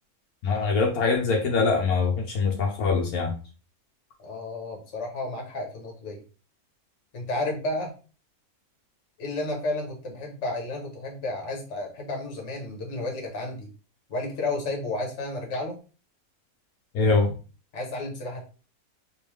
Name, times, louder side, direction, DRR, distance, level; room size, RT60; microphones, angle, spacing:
voice 1, 0.4-3.3 16.9-17.3, left 4 dB, 80° left, 1.2 m, -23 dB
voice 2, 4.2-6.2 7.1-7.9 9.2-13.7 14.1-15.8 17.7-18.4, left 2 dB, 55° left, 1.4 m, -32 dB
3.5 x 3.0 x 3.0 m
omnidirectional pair, 1.6 m